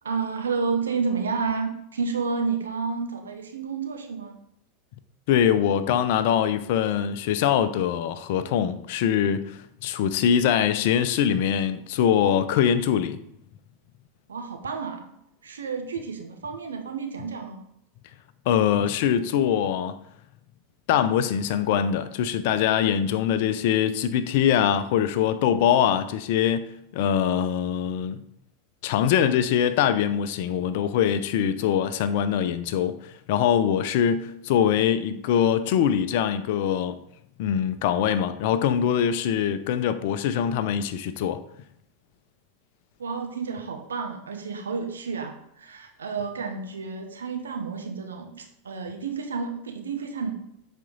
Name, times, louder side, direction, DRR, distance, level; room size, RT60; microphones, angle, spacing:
voice 1, 0.0-4.4 14.3-15.1 15.4-17.6 43.0-50.3, right 5 dB, 75° right, 1.0 m, -30 dB
voice 2, 5.3-13.2 18.5-20.0 20.9-28.2 28.8-37.0 37.4-41.4, left 9 dB, 55° left, 0.6 m, -23 dB
7.5 x 4.4 x 3.9 m
figure-of-eight pair, 85°, 0 cm